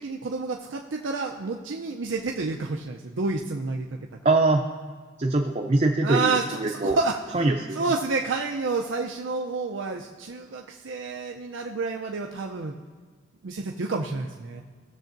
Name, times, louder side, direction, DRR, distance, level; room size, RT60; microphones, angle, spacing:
voice 1, 0.0-3.9 6.0-12.7 13.4-14.6, right 3 dB, 90° right, 1 dB, 0.6 m, -29 dB
voice 2, 4.2-4.6 5.2-7.0 7.3-7.8, right 2 dB, 35° right, 2 dB, 0.5 m, -23 dB
17.5 x 7.1 x 2.6 m, 1.5 s
head